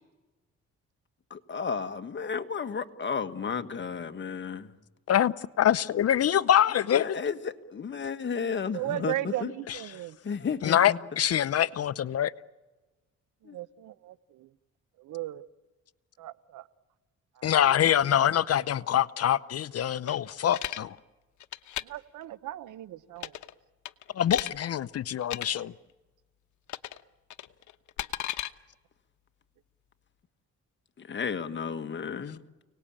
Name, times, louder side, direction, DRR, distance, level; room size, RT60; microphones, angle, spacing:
voice 1, 1.3-4.7 6.9-9.5 9.9-11.0 11.5-11.6 13.4-13.5 31.0-32.4, left 6 dB, 40° left, 1.6 m, -33 dB
voice 2, 5.1-7.2 10.6-12.3 17.4-21.0 24.2-25.7, left 10 dB, 55° left, 0.7 m, -25 dB
voice 3, 8.7-10.2 13.5-14.5 15.0-15.4 16.2-16.7 17.4-17.7 21.8-23.4, right 14 dB, 80° right, 1.0 m, -36 dB
sound 1, 20.1-20.8 21.4-21.8 23.2-23.5 23.8-24.5 25.2-25.5 26.7-27.0 27.3-28.5, left 13 dB, 75° left, 1.1 m, -35 dB
30.0 x 19.0 x 8.8 m
cardioid pair, 90°, 30 cm